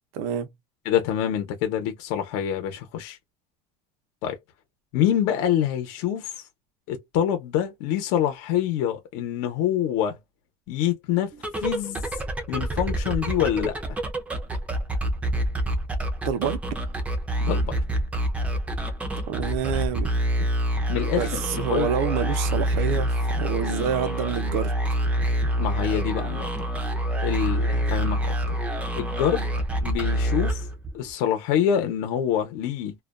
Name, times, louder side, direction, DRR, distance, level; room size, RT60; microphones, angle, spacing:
voice 1, 0.1-0.5 16.2-16.6 19.3-20.1 21.1-24.7, right 8 dB, 85° right, 0.6 m, -27 dB
voice 2, 0.9-3.2 4.2-4.4 4.9-6.3 6.9-10.2 10.7-11.3 11.6-12.0 12.5-13.7 17.4-17.8 20.9-21.9 23.7-23.9 25.6-26.5 27.2-28.3 29.0-29.5 29.8-30.6 30.9-32.9, left 10 dB, 70° left, 0.8 m, -26 dB
sound 1, 11.3-31.1, right 1 dB, 10° right, 0.4 m, -26 dB
2.3 x 2.2 x 2.4 m
cardioid pair, 175°, 14 cm